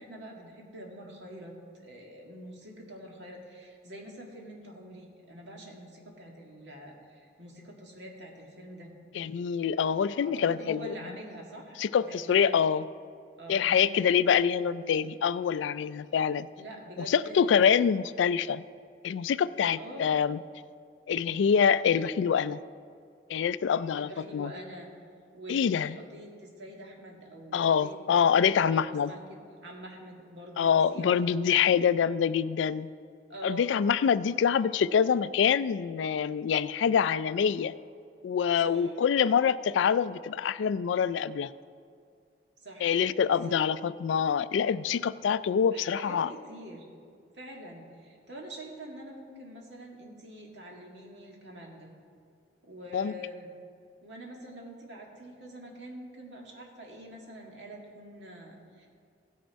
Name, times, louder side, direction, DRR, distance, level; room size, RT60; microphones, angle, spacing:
voice 1, 0.0-1.5 1.8-8.9 10.2-11.8 12.1-12.6 13.4-14.5 14.9-15.2 16.6-17.7 19.8-20.1 24.0-24.9 25.3-28.3 28.7-31.2 33.3-33.7 38.6-38.9 42.6-42.8 43.3-43.6 45.7-46.8 47.3-51.9 52.6-53.5 54.0-58.9, equal, 75° right, -1 dB, 1.9 m, -45 dB
voice 2, 9.1-10.9 11.8-12.8 13.5-16.5 17.0-18.6 19.0-20.4 21.1-22.6 23.3-24.5 25.5-26.0 27.5-29.1 30.6-32.9 33.4-37.7 38.2-41.5 42.8-46.3 52.9-53.1, left 7 dB, 85° left, 16 dB, 0.3 m, -25 dB
16.0 x 6.5 x 4.6 m, 2.3 s
head